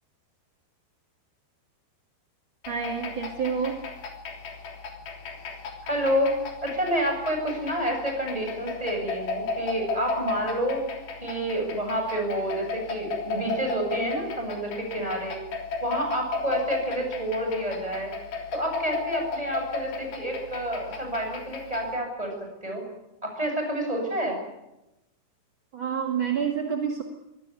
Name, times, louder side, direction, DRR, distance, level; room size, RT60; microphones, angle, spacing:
sound 1, 2.6-21.9, left 4 dB, 60° left, 5.0 m, -35 dB
voice 1, 2.7-3.8 25.7-27.0, right 7 dB, 45° right, 2 dB, 1.8 m, -28 dB
voice 2, 5.8-6.3 6.6-10.8 11.2-15.4 15.8-18.1 18.5-22.8 23.2-24.4, equal, 5° right, 2 dB, 7.7 m, -29 dB
24.0 x 18.5 x 9.6 m, 0.93 s
omnidirectional pair, 5.0 m